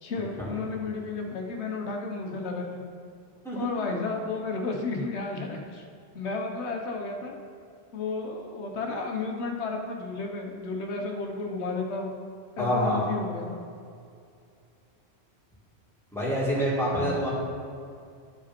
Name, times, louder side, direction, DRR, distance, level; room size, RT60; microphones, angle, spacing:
voice 1, 0.0-2.8 3.5-5.8 6.1-7.4 7.9-12.1 12.6-13.6 16.9-17.1, left 3 dB, 85° left, 2 dB, 1.2 m, -32 dB
voice 2, 12.6-13.0 16.1-17.3, equal, ahead, -7 dB, 2.1 m, -26 dB
11.0 x 5.0 x 4.3 m, 2.4 s
omnidirectional pair, 1.1 m